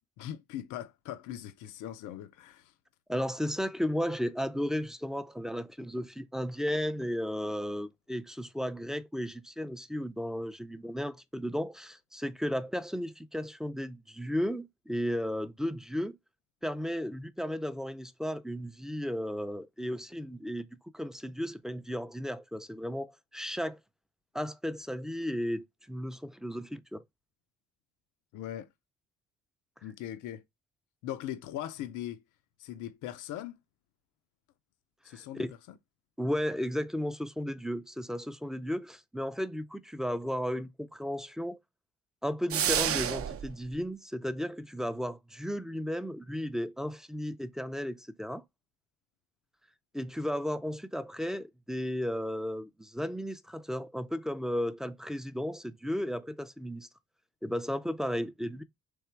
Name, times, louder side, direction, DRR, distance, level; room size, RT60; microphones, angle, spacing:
voice 1, 0.2-2.7 28.3-28.7 29.8-30.4 31.0-32.2 32.6-33.6 35.0-35.4, left 12 dB, 90° left, 0.6 m, -40 dB
voice 2, 3.1-16.2 16.6-20.7 20.9-23.8 24.3-27.0 35.1-35.5 36.2-41.6 42.2-48.4 49.9-56.9 57.4-58.6, equal, ahead, 0.4 m, -34 dB
sound 1, 42.5-43.5, right 9 dB, 50° right, 0.5 m, -29 dB
3.5 x 3.3 x 4.4 m
cardioid pair, 90°, 30 cm